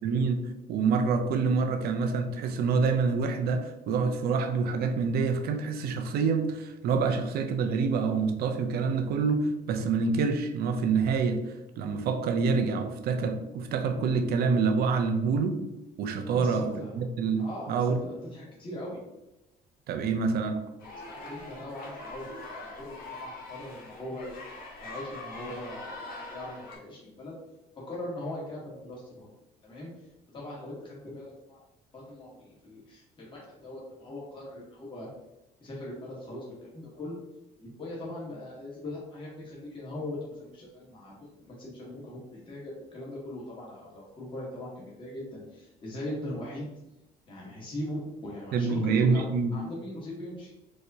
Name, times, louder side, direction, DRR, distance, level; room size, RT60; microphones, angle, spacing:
voice 1, 0.0-0.4 0.7-11.4 11.8-15.6 16.0-18.0 19.9-20.6 48.5-49.5, right 5 dB, 65° right, 6 dB, 0.5 m, -27 dB
voice 2, 16.3-17.0 17.4-19.0 21.1-24.4 24.8-27.4 27.9-29.3 29.6-29.9 30.3-31.6 31.9-35.1 35.6-37.2 37.6-46.7 47.3-50.5, left 1 dB, 30° left, -5 dB, 1.2 m, -40 dB
sound 1, 20.8-26.8, left 2 dB, 60° left, 1.1 m, -43 dB
4.7 x 2.1 x 2.7 m, 0.94 s
cardioid pair, 110°, 17 cm